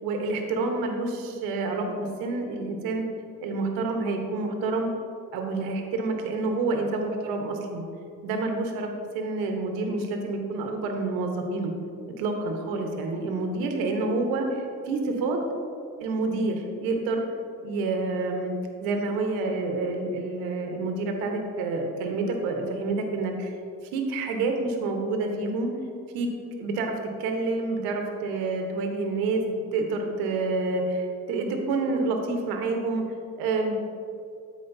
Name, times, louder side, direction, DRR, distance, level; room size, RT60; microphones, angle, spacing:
voice 1, 0.0-3.0 3.4-4.9 5.3-7.9 8.2-8.9 9.1-11.7 12.2-15.4 16.0-17.2 17.6-18.5 18.8-23.5 23.9-25.7 26.1-26.3 26.6-29.4 29.7-33.0 33.4-33.7, right 3 dB, 85° right, 3 dB, 1.2 m, -28 dB
13.5 x 4.9 x 2.7 m, 2.5 s
supercardioid pair, 75°, 34 cm